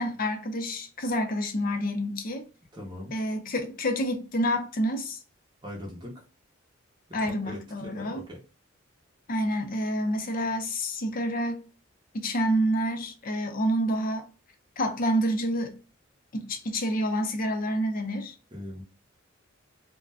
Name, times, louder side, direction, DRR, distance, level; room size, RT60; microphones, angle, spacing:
voice 1, 0.0-2.4 3.1-5.2 7.1-8.2 9.3-11.7 12.1-14.3 14.8-15.8 16.3-18.3, equal, 45° left, 0.5 m, -28 dB
voice 2, 2.7-3.1 5.6-6.1 7.4-8.4 18.5-18.8, left 1 dB, 20° right, 0.7 m, -40 dB
2.4 x 2.2 x 3.3 m
head